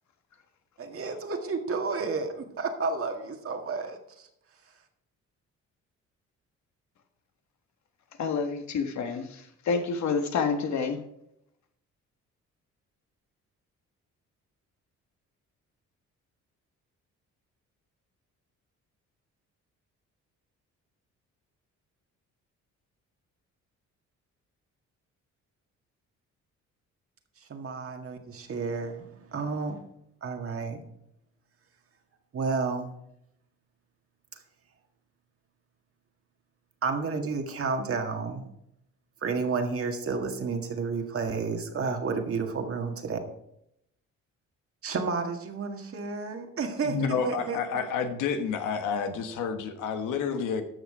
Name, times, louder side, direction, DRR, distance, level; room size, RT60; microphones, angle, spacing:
voice 1, 0.8-4.3 27.4-29.8 30.2-30.8 32.3-32.9 36.8-38.5 39.2-43.2 44.8-47.6, right 4 dB, 50° right, 5 dB, 1.8 m, -31 dB
voice 2, 8.2-11.0, left 5 dB, 65° left, 6 dB, 1.5 m, -28 dB
voice 3, 46.8-50.6, left 6 dB, 90° left, 7 dB, 1.4 m, -29 dB
13.0 x 6.1 x 4.8 m, 0.78 s
cardioid pair, 90°, 30 cm